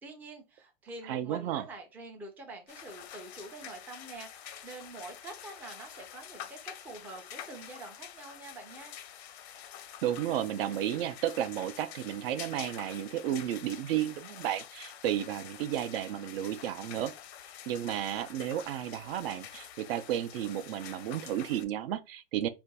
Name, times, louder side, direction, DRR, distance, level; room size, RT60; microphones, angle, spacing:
voice 1, 0.0-8.9, right 2 dB, 5° right, 0.3 m, -46 dB
voice 2, 1.0-1.7 10.0-17.1 17.7-22.5, right 11 dB, 65° right, 0.5 m, -33 dB
sound 1, 2.7-21.7, left 10 dB, 85° left, 0.6 m, -47 dB
2.5 x 2.3 x 3.8 m
supercardioid pair, 140°, 31 cm